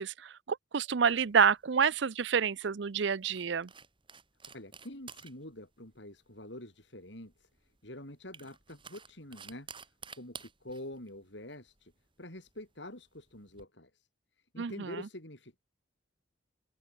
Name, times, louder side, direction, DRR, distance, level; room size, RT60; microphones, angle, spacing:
voice 1, 0.0-3.7 14.6-15.0, right 6 dB, 65° right, 0.5 m, -28 dB
sound 1, 1.0-13.6, right 6 dB, 25° right, 6.9 m, -54 dB
voice 2, 4.5-9.7 10.2-11.9 12.2-14.1 14.4-15.6, left 1 dB, 65° left, 7.2 m, -46 dB
open air
head